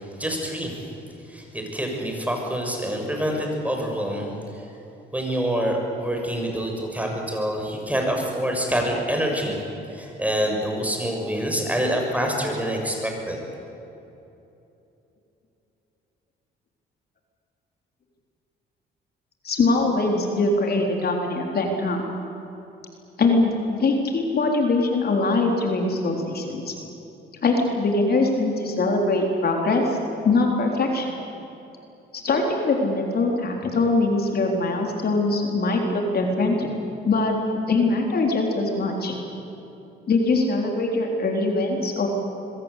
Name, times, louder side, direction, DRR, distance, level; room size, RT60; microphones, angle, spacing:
voice 1, 0.2-0.9 1.3-4.6 5.1-9.6 9.9-13.4, equal, 5° right, 1 dB, 6.7 m, -26 dB
voice 2, 19.4-22.0 23.2-26.7 27.4-30.0 30.2-31.1 32.1-36.7 37.0-37.3 37.7-39.2 40.1-42.1, left 3 dB, 50° left, 1 dB, 4.0 m, -22 dB
26.0 x 22.5 x 8.4 m, 2.9 s
cardioid pair, 90°, 20 cm